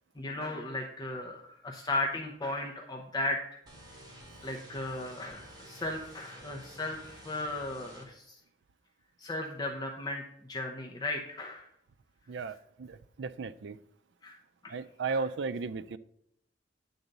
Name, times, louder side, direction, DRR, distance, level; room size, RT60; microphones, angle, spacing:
voice 1, 0.2-3.6 4.4-8.4 9.2-10.2 10.5-11.7 14.2-14.4 14.6-14.7 15.1-15.2, left 2 dB, 20° left, 0 dB, 0.8 m, -36 dB
sound 1, 3.7-8.1, equal, 20° right, 2.1 m, -51 dB
voice 2, 12.3-13.8 14.7-16.0, right 4 dB, 65° right, 13 dB, 0.4 m, -35 dB
10.0 x 3.9 x 6.6 m, 0.73 s
head